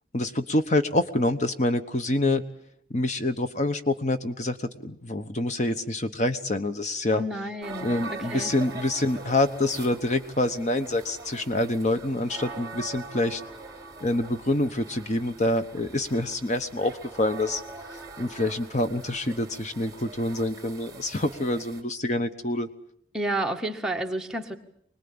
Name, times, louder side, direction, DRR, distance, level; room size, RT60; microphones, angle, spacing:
voice 1, 0.1-2.4 2.9-7.2 7.8-13.4 14.0-17.6 17.9-22.7, left 1 dB, 40° left, 10 dB, 1.1 m, -26 dB
voice 2, 7.1-8.5 23.1-24.6, right 1 dB, 5° right, 1 dB, 1.8 m, -31 dB
sound 1, 7.6-21.8, right 3 dB, 20° right, 3.6 m, -42 dB
25.0 x 20.5 x 8.7 m, 0.69 s
head